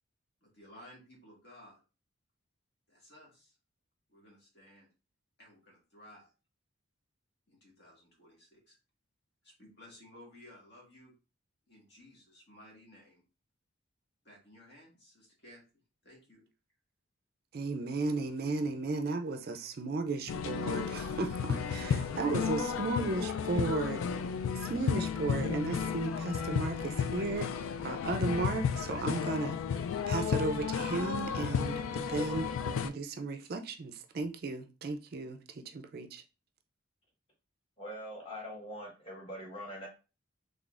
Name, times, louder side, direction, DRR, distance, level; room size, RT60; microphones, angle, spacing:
voice 1, 0.4-1.8 2.9-3.5 4.1-4.9 5.4-6.3 7.5-8.8 9.4-11.1 11.7-13.2 14.2-15.6 16.0-16.4, left 1 dB, 55° left, 1.6 m, -56 dB
voice 2, 17.5-24.1 24.6-36.2, right 3 dB, 50° right, 0.4 m, -35 dB
sound 1, 20.3-32.9, left 6 dB, 85° left, 0.3 m, -33 dB
voice 3, 37.8-39.9, equal, 25° left, 1.4 m, -43 dB
3.8 x 3.3 x 2.4 m
head